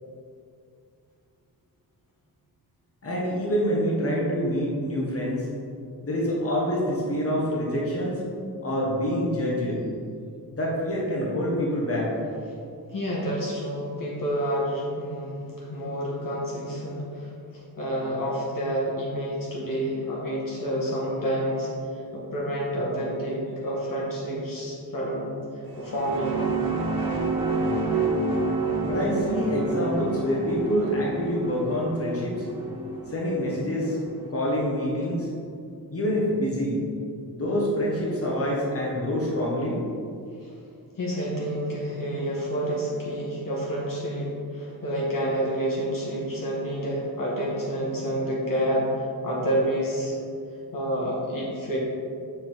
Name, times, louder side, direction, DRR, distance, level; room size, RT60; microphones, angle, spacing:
voice 1, 3.0-5.5 6.0-8.2 8.6-9.8 10.5-12.1 28.8-32.4 33.1-34.0 34.3-35.3 35.9-36.8 37.3-39.8, equal, 35° left, -4 dB, 1.5 m, -26 dB
voice 2, 12.9-21.7 22.1-25.3 25.8-26.4 41.0-50.2 50.7-51.8, equal, 60° left, -5 dB, 1.6 m, -29 dB
sound 1, 25.7-34.3, right 3 dB, 65° right, 1.2 m, -29 dB
6.8 x 4.6 x 4.0 m, 2.4 s
cardioid pair, 90°, 38 cm